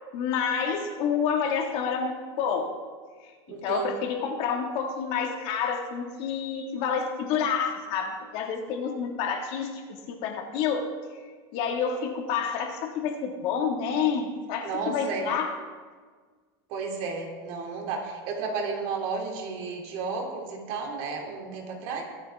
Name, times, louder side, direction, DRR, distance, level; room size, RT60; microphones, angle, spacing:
voice 1, 0.1-2.7 3.2-10.9 11.5-15.6, left 6 dB, 50° left, 2 dB, 2.0 m, -29 dB
voice 2, 3.5-3.9 14.6-15.3 16.7-22.0, right 4 dB, 55° right, 0 dB, 3.0 m, -32 dB
23.0 x 8.0 x 3.6 m, 1.5 s
supercardioid pair, 150°, 13 cm